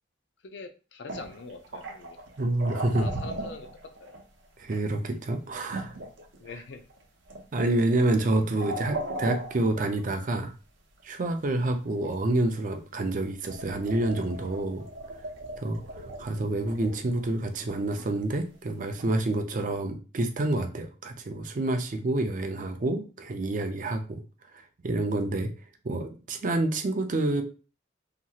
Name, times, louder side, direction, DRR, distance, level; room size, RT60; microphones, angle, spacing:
voice 1, 0.4-2.2 3.0-3.7 4.0-4.1 6.4-6.8, left 3 dB, 65° left, 7 dB, 0.4 m, -43 dB
sound 1, 1.1-4.2 4.7-4.8 5.7-7.0 7.3-7.6 8.0-10.4 11.7-12.2 13.1-13.2 13.5-18.0 18.9-19.0, right 1 dB, 75° right, 0.7 m, -38 dB
voice 2, 2.4-3.1 4.6-5.9 7.5-10.5 11.0-14.9 15.6-24.2 24.5-25.5 25.8-27.4, right 2 dB, 45° right, 6 dB, 0.4 m, -28 dB
2.9 x 2.3 x 2.7 m, 0.34 s
head